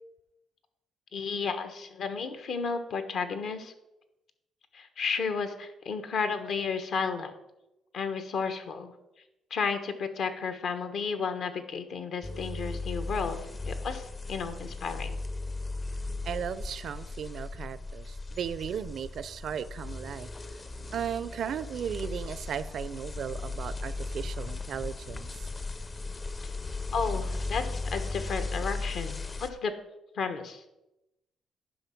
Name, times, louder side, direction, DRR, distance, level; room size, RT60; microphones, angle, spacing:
voice 1, 1.1-3.7 4.7-7.3 7.9-8.9 9.5-13.4 13.7-15.1 26.4-26.5 26.9-29.7 30.1-30.6, left 5 dB, 70° left, 1.2 m, -32 dB
sound 1, 12.2-29.5, left 3 dB, 30° left, 0.6 m, -37 dB
voice 2, 16.2-20.3 20.9-25.5, right 8 dB, 65° right, 0.5 m, -36 dB
10.0 x 5.6 x 5.9 m
cardioid pair, 90°, 0 cm